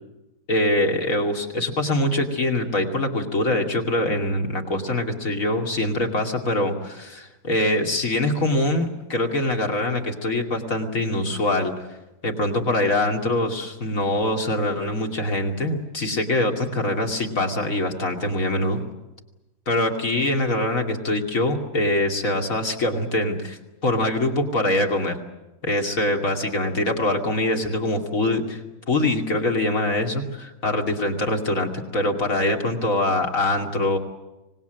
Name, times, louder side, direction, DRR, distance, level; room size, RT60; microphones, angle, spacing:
voice 1, 0.5-11.7 12.2-18.8 19.7-25.2 25.6-28.6 28.9-34.0, left 1 dB, 45° left, 2 dB, 2.9 m, -23 dB
25.5 x 19.5 x 9.2 m, 1.0 s
omnidirectional pair, 2.0 m